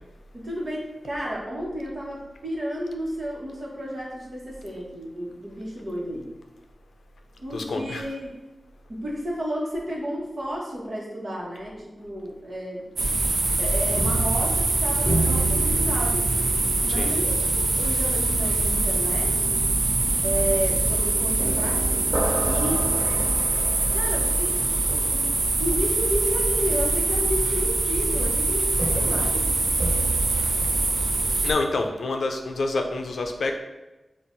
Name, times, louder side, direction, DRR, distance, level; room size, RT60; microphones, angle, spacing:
voice 1, 0.3-6.3 7.4-8.3 8.9-12.9 13.6-16.3 16.8-19.6 20.2-22.1 22.4-22.8 23.9-25.3 25.6-29.4, equal, 45° right, -4 dB, 1.2 m, -32 dB
voice 2, 7.5-8.0 17.0-17.1 31.4-33.6, left 3 dB, 85° left, 4 dB, 0.5 m, -27 dB
sound 1, 13.0-31.5, right 2 dB, 85° right, 0.6 m, -24 dB
sound 2, 13.3-31.8, right 2 dB, 10° right, 0.3 m, -33 dB
7.0 x 2.5 x 2.6 m, 1.1 s
wide cardioid pair, 130°, 0 cm